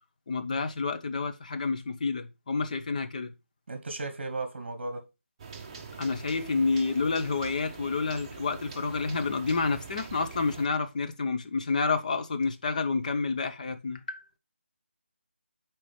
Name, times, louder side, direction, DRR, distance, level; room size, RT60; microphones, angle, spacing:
voice 1, 0.3-3.3 6.0-14.2, left 4 dB, 35° left, 0.8 m, -29 dB
voice 2, 3.7-5.0, right 2 dB, 45° right, 1.1 m, -35 dB
sound 1, 5.4-10.7, right 5 dB, 25° right, 0.8 m, -44 dB
6.0 x 4.5 x 4.8 m
figure-of-eight pair, 160°, 7 cm